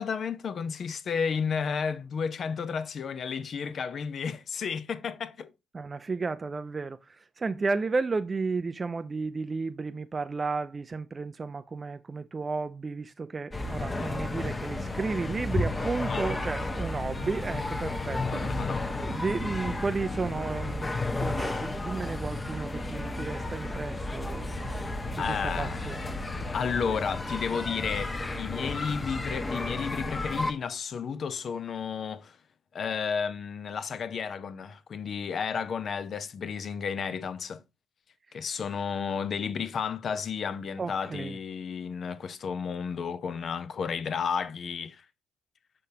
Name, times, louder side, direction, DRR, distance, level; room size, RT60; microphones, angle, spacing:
voice 1, 0.0-5.5 14.0-14.1 16.1-16.2 18.3-18.9 25.2-25.9 26.5-32.4 32.7-37.6 38.3-45.0, left 6 dB, 50° left, 0.5 m, -32 dB
voice 2, 5.7-18.7 19.0-24.5 25.1-26.2 38.3-38.5 40.8-41.4, right 4 dB, 30° right, 0.3 m, -33 dB
sound 1, 13.5-30.5, left 2 dB, 25° left, 0.8 m, -32 dB
6.4 x 5.3 x 2.7 m
hypercardioid pair, 50°, 0 cm